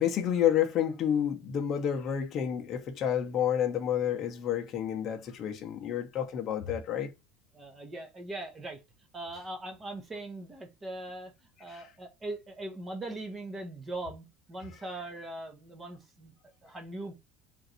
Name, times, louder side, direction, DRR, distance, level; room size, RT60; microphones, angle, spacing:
voice 1, 0.0-7.1 11.7-11.9, left 9 dB, 35° left, 0.8 m, -29 dB
voice 2, 7.5-8.8 9.1-11.3 11.6-16.3 16.6-17.1, right 2 dB, 15° right, 0.9 m, -40 dB
3.8 x 2.6 x 4.3 m
cardioid pair, 165°, 0 cm